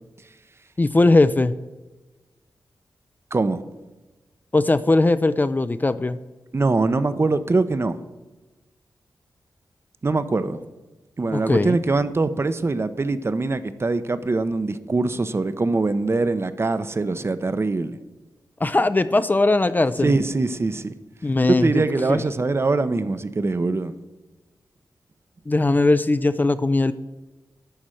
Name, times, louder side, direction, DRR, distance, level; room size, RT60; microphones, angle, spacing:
voice 1, 0.8-1.5 4.5-6.2 11.3-11.8 18.6-20.1 21.2-21.8 22.1-22.2 25.5-26.9, left 2 dB, 25° left, 13 dB, 0.4 m, -19 dB
voice 2, 3.3-3.6 6.5-8.0 10.0-10.7 11.2-18.0 20.0-20.9 21.5-23.9, right 3 dB, 35° right, 12 dB, 0.6 m, -23 dB
11.5 x 4.3 x 7.7 m, 1.2 s
wide cardioid pair, 90°, 7 cm